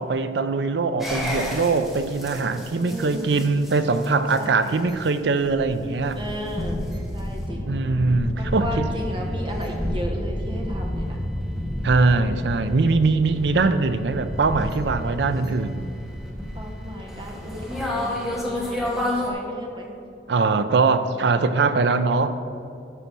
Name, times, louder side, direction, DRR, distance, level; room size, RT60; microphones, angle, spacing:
voice 1, 0.0-6.2 7.7-8.9 11.8-15.9 20.3-22.3, right 3 dB, 70° right, 11 dB, 0.5 m, -22 dB
sound 1, 1.0-19.3, left 1 dB, ahead, 1.5 m, -31 dB
voice 2, 2.7-3.4 4.4-4.8 6.1-7.7 8.4-11.2 12.8-13.4 16.5-19.9, equal, 30° right, 1 dB, 1.2 m, -35 dB
12.5 x 4.2 x 6.0 m, 2.5 s
head